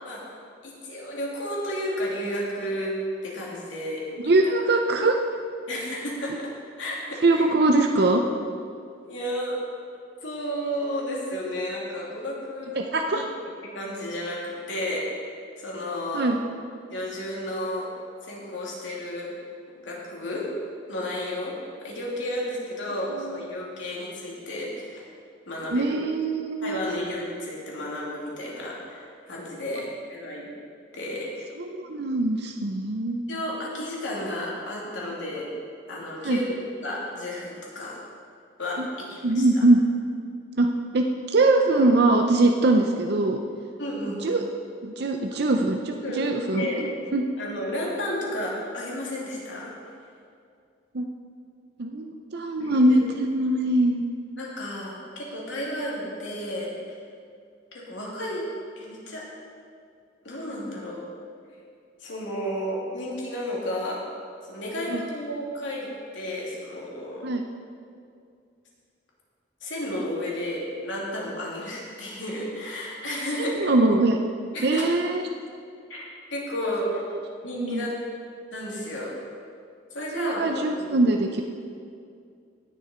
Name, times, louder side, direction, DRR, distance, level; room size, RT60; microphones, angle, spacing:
voice 1, 0.6-3.0 3.2-4.3 5.7-6.5 6.8-7.4 9.1-9.6 10.2-12.9 13.6-15.1 15.6-16.3 16.9-17.9 18.2-19.3 19.7-20.5 20.9-21.6 21.8-25.0 25.5-26.0 26.6-30.5 30.9-31.5 33.3-35.5 35.9-36.6 36.8-38.0 38.6-38.8 39.1-39.4 43.8-44.4 45.8-46.2 46.5-46.9 47.4-49.7 52.6-53.0 54.4-57.0 57.7-58.5 58.8-59.2 60.2-61.0 62.0-64.0 64.4-67.3 69.6-73.7 74.5-74.9 75.9-77.0 77.4-78.0 78.5-79.1 79.9-81.2, left 1 dB, 75° left, -4 dB, 2.8 m, -32 dB
voice 2, 4.2-5.2 7.2-8.3 12.8-13.3 16.1-16.4 25.7-26.8 31.6-33.2 36.2-36.4 38.8-38.9 39.2-39.8 40.6-40.7 40.9-43.4 44.2-44.4 44.8-47.2 50.9-51.1 51.8-54.0 64.9-65.0 67.2-67.4 73.4-74.2 74.6-75.2 77.1-77.2 77.6-77.9 80.1-81.4, right 2 dB, 55° right, 3 dB, 0.6 m, -22 dB
17.5 x 6.6 x 4.4 m, 2.3 s
head